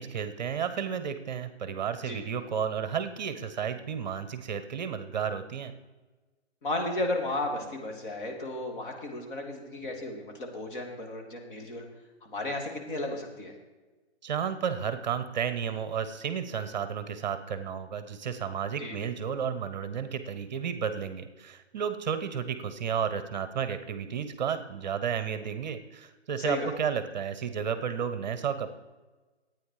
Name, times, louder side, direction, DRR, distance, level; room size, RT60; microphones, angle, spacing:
voice 1, 0.0-5.7 14.2-28.7, right 7 dB, 40° right, 11 dB, 0.8 m, -32 dB
voice 2, 6.6-11.8 12.2-13.5 18.8-19.1 26.4-26.7, left 1 dB, 50° left, 1 dB, 2.7 m, -34 dB
12.5 x 9.1 x 4.8 m, 1.3 s
hypercardioid pair, 150°, 34 cm